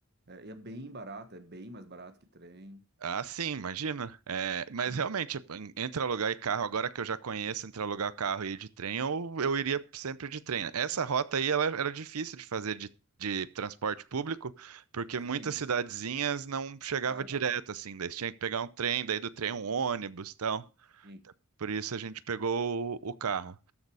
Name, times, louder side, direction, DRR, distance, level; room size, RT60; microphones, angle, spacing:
voice 1, 0.3-2.9 15.2-15.5 17.1-17.3 21.0-21.2, right 1 dB, 50° right, 1.4 m, -45 dB
voice 2, 3.0-12.9 13.2-20.7 21.6-23.7, right 6 dB, 90° right, 0.7 m, -33 dB
13.0 x 6.7 x 4.8 m
head